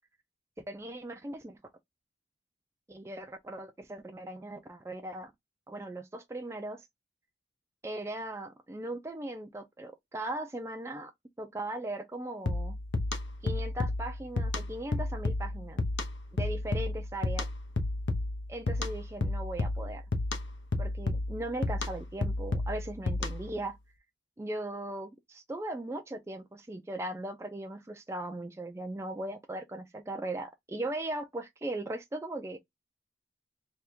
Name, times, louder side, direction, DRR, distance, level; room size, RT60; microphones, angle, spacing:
voice 1, 0.6-1.6 2.9-5.3 5.7-6.8 7.8-11.1 11.4-12.8 13.4-15.8 16.3-17.5 18.5-20.0 20.8-23.8 24.4-32.6, right 1 dB, 15° right, 0.4 m, -38 dB
sound 1, 12.5-23.6, left 2 dB, 90° left, 0.8 m, -32 dB
3.4 x 2.3 x 4.4 m
head